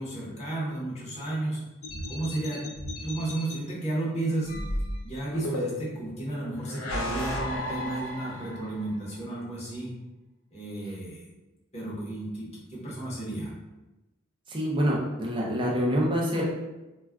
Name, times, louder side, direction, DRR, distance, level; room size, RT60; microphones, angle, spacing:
voice 1, 0.0-1.6 2.1-2.7 3.0-4.5 5.0-9.9 10.5-11.2 11.7-13.5, right 2 dB, 30° left, -6 dB, 0.9 m, -33 dB
sound 1, 1.8-3.6 4.5-6.0 6.6-8.8, left 1 dB, 75° left, 0.6 m, -34 dB
voice 2, 14.5-16.4, equal, 25° right, -3 dB, 0.5 m, -26 dB
2.3 x 2.3 x 3.4 m, 1.0 s
head